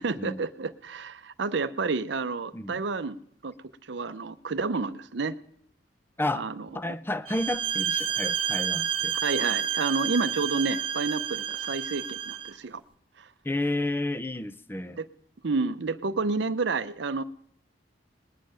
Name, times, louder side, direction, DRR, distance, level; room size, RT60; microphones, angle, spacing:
voice 1, 0.0-3.2 3.4-3.5 3.8-5.3 6.3-6.7 9.2-12.8 13.2-13.3 15.0-15.1 15.4-17.2, right 4 dB, 70° right, 0.6 m, -30 dB
voice 2, 2.5-2.8 6.2-6.5 6.7-9.2 13.4-15.0, left 1 dB, 10° left, 0.5 m, -31 dB
sound 1, 7.3-12.5, right 9 dB, 30° right, 1.0 m, -30 dB
20.5 x 7.6 x 8.7 m
head